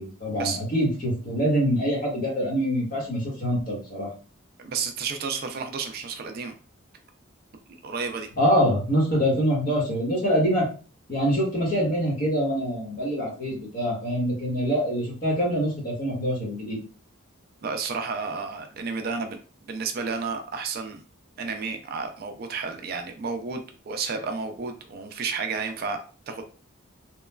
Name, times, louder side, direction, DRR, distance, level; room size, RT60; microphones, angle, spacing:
voice 1, 0.0-4.1 8.4-10.7 11.1-16.8, equal, 40° left, -3 dB, 1.1 m, -25 dB
voice 2, 4.6-6.5 7.8-8.3 17.6-21.0 21.4-23.6 23.9-26.4, right 5 dB, 45° right, 6 dB, 0.3 m, -31 dB
3.0 x 2.2 x 2.2 m, 0.37 s
head